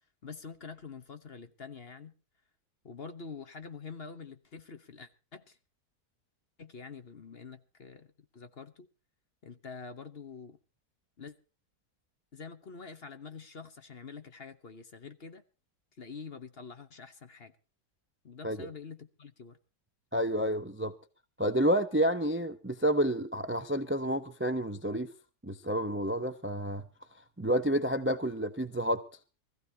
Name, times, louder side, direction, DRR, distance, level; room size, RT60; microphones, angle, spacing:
voice 1, 0.2-2.1 2.8-5.6 6.6-8.9 9.4-10.6 11.2-11.3 12.3-15.4 16.0-17.5 18.2-19.6, left 5 dB, 40° left, 1.1 m, -46 dB
voice 2, 20.1-20.9 21.4-25.1 25.4-26.8 27.4-29.0, right 1 dB, 15° right, 0.4 m, -29 dB
24.0 x 15.0 x 2.8 m
omnidirectional pair, 1.8 m